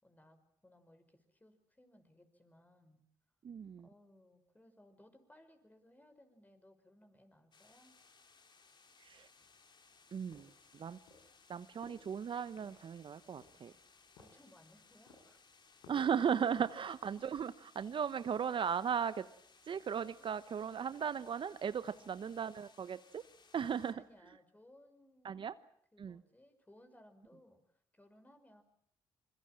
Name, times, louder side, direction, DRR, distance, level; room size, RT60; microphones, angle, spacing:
voice 1, 0.0-3.0 3.8-7.9 14.1-15.5 16.6-16.7 20.2-20.3 21.9-22.2 23.8-25.5 25.9-28.6, left 1 dB, 15° left, 8 dB, 5.9 m, -63 dB
voice 2, 3.4-3.9 9.0-9.3 10.1-11.0 11.5-13.7 15.9-19.3 19.7-23.2 23.5-24.0 25.2-25.5 26.0-26.2, right 7 dB, 55° right, 13 dB, 1.0 m, -37 dB
sound 1, 7.5-23.9, left 4 dB, 45° left, 3.5 m, -65 dB
sound 2, 10.3-17.3, left 3 dB, 90° left, 5.7 m, -63 dB
26.0 x 22.0 x 7.6 m, 0.66 s
supercardioid pair, 60°, 10 cm